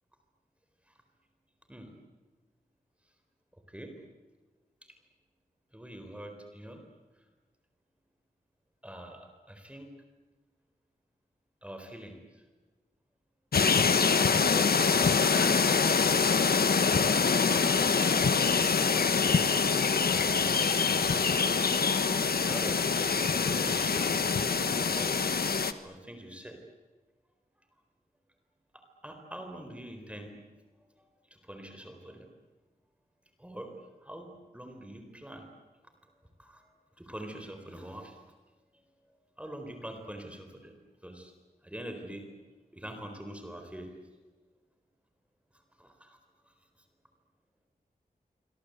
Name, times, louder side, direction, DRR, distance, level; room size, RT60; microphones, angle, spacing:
voice 1, 5.7-6.8 7.2-7.3 8.8-9.9 11.6-12.4 14.5-16.8 20.2-21.6 21.9-25.2 25.8-26.6 28.7-30.3 31.0-31.1 31.3-32.3 33.4-33.7 34.0-34.3 34.5-35.5 36.4-36.7 36.9-38.2 39.4-40.7 41.0-41.3 41.6-42.2 42.7-43.9 45.8-46.2 46.5-46.6, right 1 dB, 10° right, 4 dB, 4.2 m, -45 dB
sound 1, 13.5-25.7, left 5 dB, 75° left, 1.3 m, -25 dB
27.0 x 24.5 x 8.2 m, 1.3 s
wide cardioid pair, 105°, 16 cm